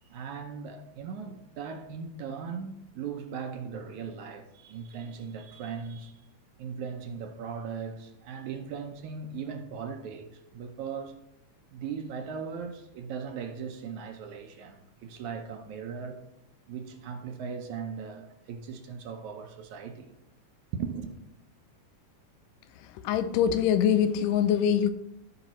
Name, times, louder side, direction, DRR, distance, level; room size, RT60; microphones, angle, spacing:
voice 1, 0.0-6.1 6.6-11.2 11.7-16.2 16.7-20.1 20.7-21.1, right 6 dB, 75° right, 1.9 m, -38 dB
voice 2, 23.0-24.9, left 9 dB, 85° left, 2.2 m, -23 dB
15.0 x 5.1 x 3.1 m
omnidirectional pair, 3.8 m